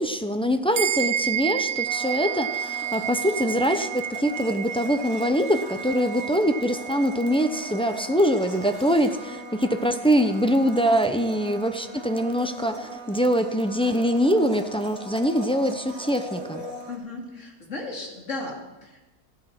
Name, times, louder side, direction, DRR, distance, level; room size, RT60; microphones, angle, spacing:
voice 1, 0.0-16.6, equal, 5° left, 6 dB, 0.4 m, -23 dB
sound 1, 0.7-10.5, right 9 dB, 90° right, 0.4 m, -32 dB
Domestic sounds home sounds, 1.8-17.0, right 1 dB, 35° right, 4.0 m, -39 dB
voice 2, 16.9-19.1, left 2 dB, 50° left, 0 dB, 3.1 m, -35 dB
14.5 x 12.0 x 6.0 m, 1.1 s
omnidirectional pair, 1.6 m